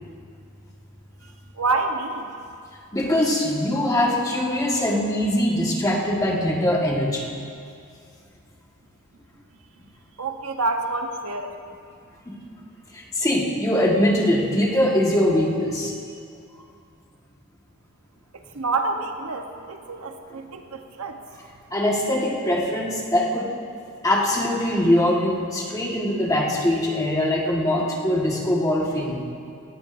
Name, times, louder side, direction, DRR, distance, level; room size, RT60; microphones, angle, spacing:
voice 1, 1.2-2.3 10.2-11.6 18.3-21.2, right 3 dB, 75° right, 5 dB, 0.9 m, -28 dB
voice 2, 2.9-7.3 12.9-15.9 21.7-23.5 24.0-29.2, left 1 dB, 15° left, -2 dB, 1.4 m, -22 dB
17.5 x 15.0 x 2.6 m, 2.4 s
head